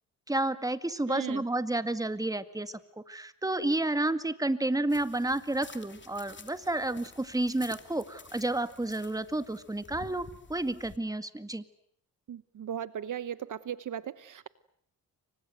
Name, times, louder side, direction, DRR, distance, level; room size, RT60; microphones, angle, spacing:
voice 1, 0.3-2.8 3.1-11.6, right 2 dB, 10° right, 11 dB, 2.0 m, -31 dB
voice 2, 1.1-1.4 12.3-14.5, right 9 dB, 55° right, 15 dB, 1.1 m, -37 dB
sound 1, 4.9-11.0, left 4 dB, 30° left, 2.9 m, -51 dB
29.5 x 24.5 x 7.9 m, 0.68 s
cardioid pair, 90°, 36 cm